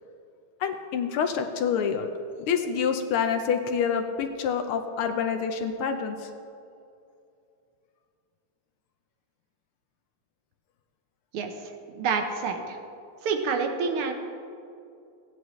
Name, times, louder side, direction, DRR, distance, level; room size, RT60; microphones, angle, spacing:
voice 1, 0.6-2.1 2.5-6.3, left 7 dB, 80° left, 6 dB, 1.6 m, -27 dB
voice 2, 11.9-12.8 13.2-14.1, right 5 dB, 80° right, 5 dB, 1.9 m, -27 dB
16.0 x 9.7 x 3.1 m, 2.5 s
omnidirectional pair, 2.4 m